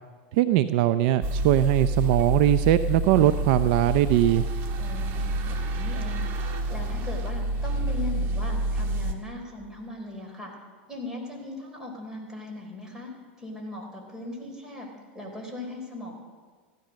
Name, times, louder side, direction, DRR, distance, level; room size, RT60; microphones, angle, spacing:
voice 1, 0.3-4.5, right 13 dB, 55° right, 12 dB, 0.5 m, -21 dB
sound 1, 1.2-9.1, right 1 dB, 40° right, 1.8 m, -28 dB
voice 2, 4.8-6.3 6.7-10.5 10.9-13.1 13.4-14.9 15.1-16.1, left 2 dB, 10° right, 0 dB, 4.3 m, -38 dB
15.0 x 13.5 x 6.4 m, 1.5 s
supercardioid pair, 125°, 6 cm